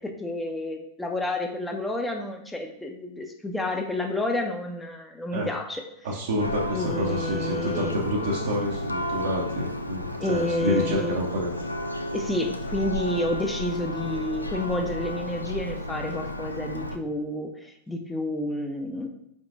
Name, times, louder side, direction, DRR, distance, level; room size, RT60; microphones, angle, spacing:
voice 1, 0.0-5.8 6.7-8.5 10.2-11.2 12.1-19.1, left 1 dB, 5° left, 3 dB, 0.6 m, -30 dB
voice 2, 6.0-11.5, equal, 60° right, -3 dB, 0.7 m, -28 dB
Church bell, 6.4-17.0, left 1 dB, 85° left, 0.3 m, -32 dB
4.7 x 3.6 x 2.5 m, 0.79 s
figure-of-eight pair, 90°, 0 cm